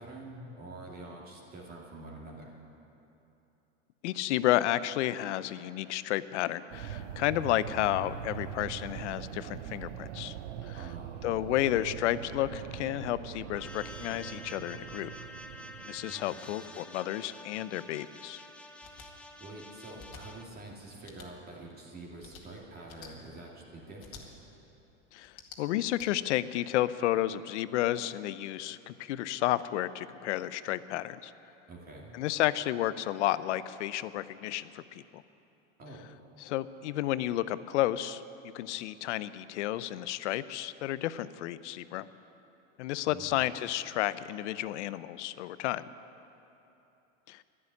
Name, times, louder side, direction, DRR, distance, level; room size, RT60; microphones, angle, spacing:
voice 1, 0.0-2.5 10.8-11.1 16.1-16.6 19.4-24.3 31.7-32.2 35.8-36.1 43.1-43.4, right 2 dB, 25° right, -2 dB, 2.4 m, -46 dB
voice 2, 4.0-10.3 10.6-10.8 11.2-15.1 15.8-18.4 25.1-31.3 32.1-35.2 36.4-42.1 42.8-45.8 47.3-47.4, left 14 dB, 75° left, 16 dB, 0.6 m, -31 dB
sound 1, 6.7-16.1, right 10 dB, 85° right, 0.8 m, -42 dB
sound 2, 13.6-20.4, left 1 dB, 5° left, 0.6 m, -48 dB
sound 3, 18.8-19.1 20.0-20.2 21.0-21.3 22.2-22.4 22.9-23.1 24.0-24.2 25.2-26.1, left 7 dB, 40° left, 2.0 m, -49 dB
11.0 x 11.0 x 9.7 m, 3.0 s
supercardioid pair, 125°, 35 cm